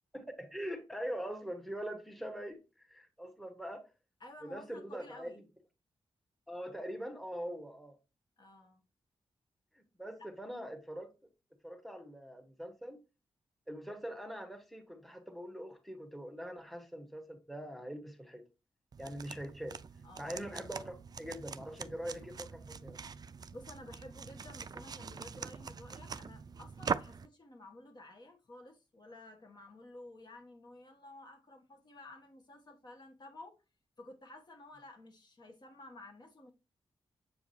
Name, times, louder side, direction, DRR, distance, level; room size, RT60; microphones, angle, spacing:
voice 1, 0.1-3.8 4.4-5.4 6.5-8.0 9.7-11.1 11.6-13.0 13.7-18.4 19.0-19.8 20.2-23.0, equal, ahead, 1.1 m, -43 dB
voice 2, 4.2-5.4 8.4-8.8 10.2-10.3 20.0-20.4 23.5-33.6 34.0-36.5, left 1 dB, 45° left, 1.3 m, -52 dB
sound 1, 18.9-27.3, right 5 dB, 40° right, 0.4 m, -43 dB
7.4 x 4.7 x 2.7 m
wide cardioid pair, 100°, 10 cm